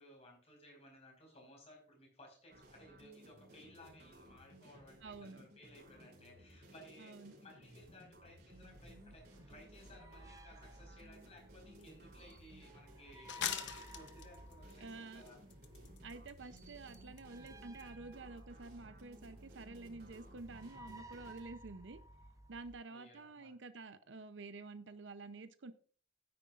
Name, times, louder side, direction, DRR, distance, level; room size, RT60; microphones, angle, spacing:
voice 1, 0.0-15.4 22.9-23.5, left 1 dB, 35° left, 1 dB, 4.9 m, -59 dB
sound 1, 2.5-21.4, equal, 55° right, 3.4 m, -60 dB
voice 2, 5.0-5.4 7.0-7.4 14.8-15.2 16.0-22.0 22.5-25.7, right 3 dB, 80° right, 11 dB, 0.7 m, -50 dB
sound 2, 8.5-22.8, right 1 dB, 20° right, 0.7 m, -57 dB
sound 3, 11.8-11.9 12.3-12.4 13.3-14.7 15.3-16.3 16.6-16.7 16.9-17.2 17.5-17.6 17.8-17.9, left 9 dB, 75° left, 0.8 m, -41 dB
13.0 x 9.7 x 2.5 m, 0.42 s
head